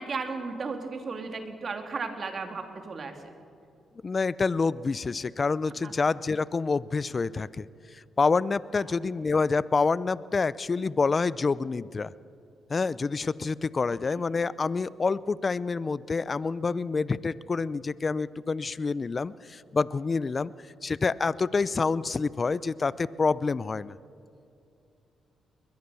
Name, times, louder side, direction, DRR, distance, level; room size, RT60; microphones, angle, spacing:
voice 1, 0.0-3.2 5.8-5.9, right 4 dB, 50° right, 5 dB, 2.8 m, -34 dB
voice 2, 4.0-7.7 8.2-12.1 12.7-20.5 20.8-23.9, left 4 dB, 40° left, 19 dB, 0.6 m, -27 dB
21.5 x 21.0 x 7.1 m, 2.6 s
cardioid pair, 70°, 0 cm